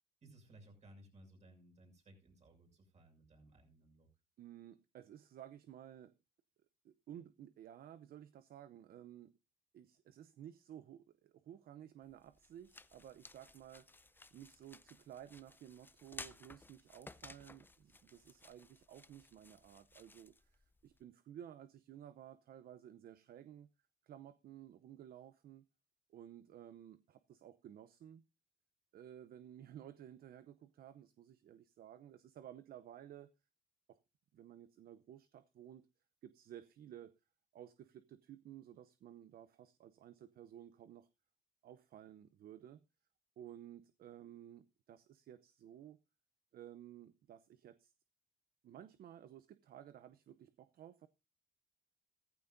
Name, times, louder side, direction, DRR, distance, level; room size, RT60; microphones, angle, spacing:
voice 1, 0.2-4.1, right 1 dB, 40° right, 6.3 m, -61 dB
voice 2, 4.4-6.1 6.8-9.3 9.7-23.7 24.0-25.6 26.1-28.2 28.9-33.3 33.9-34.0 34.3-35.9 36.2-37.1 37.5-41.1 41.6-42.8 43.4-46.0 46.5-47.9 48.6-51.1, right 10 dB, 60° right, 0.7 m, -55 dB
sound 1, 12.0-21.0, left 2 dB, 10° left, 0.6 m, -57 dB
14.5 x 14.0 x 2.6 m
cardioid pair, 95°, 18 cm